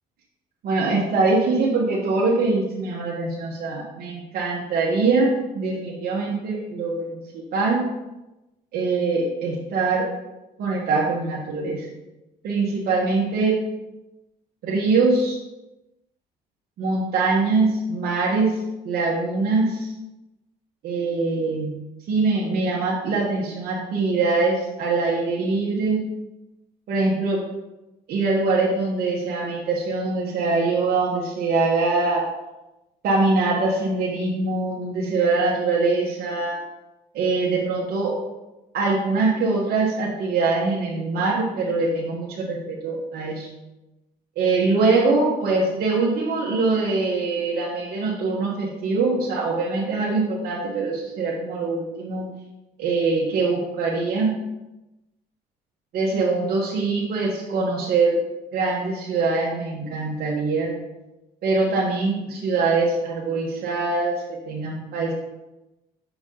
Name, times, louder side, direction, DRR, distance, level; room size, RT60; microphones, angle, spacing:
voice 1, 0.6-7.8 8.7-10.0 10.6-11.9 12.4-13.6 14.6-15.4 16.8-18.6 18.8-19.9 20.8-21.7 22.1-26.0 26.9-27.4 28.1-32.2 33.0-36.6 37.1-38.1 38.7-43.5 44.4-52.3 52.8-54.3 55.9-58.1 58.5-60.7 61.4-65.1, right 3 dB, 65° right, -5 dB, 1.2 m, -23 dB
5.6 x 4.7 x 3.8 m, 0.99 s
cardioid pair, 110°, 17 cm